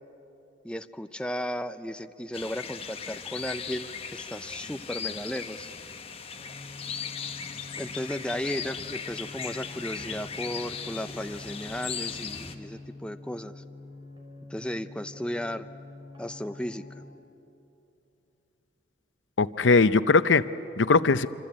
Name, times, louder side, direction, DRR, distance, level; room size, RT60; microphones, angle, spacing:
voice 1, 0.6-5.7 7.8-13.6 14.5-15.7 16.2-16.8, equal, 5° left, 9 dB, 0.5 m, -35 dB
sound 1, 2.3-12.5, left 7 dB, 30° left, 1.2 m, -38 dB
sound 2, 6.4-17.0, left 2 dB, 25° right, 4.7 m, -46 dB
voice 2, 19.4-21.3, left 4 dB, 80° left, 14 dB, 0.7 m, -21 dB
26.5 x 25.5 x 8.7 m, 3.0 s
head